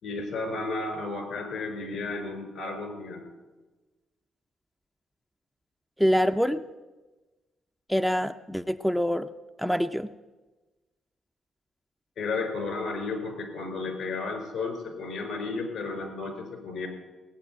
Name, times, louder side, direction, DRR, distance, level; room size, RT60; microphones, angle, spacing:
voice 1, 0.0-3.3 12.2-16.9, left 3 dB, 65° left, 6 dB, 4.4 m, -33 dB
voice 2, 6.0-6.6 7.9-9.3 9.6-10.1, equal, ahead, 9 dB, 0.4 m, -25 dB
18.0 x 8.3 x 9.1 m, 1.2 s
cardioid pair, 90°, 0 cm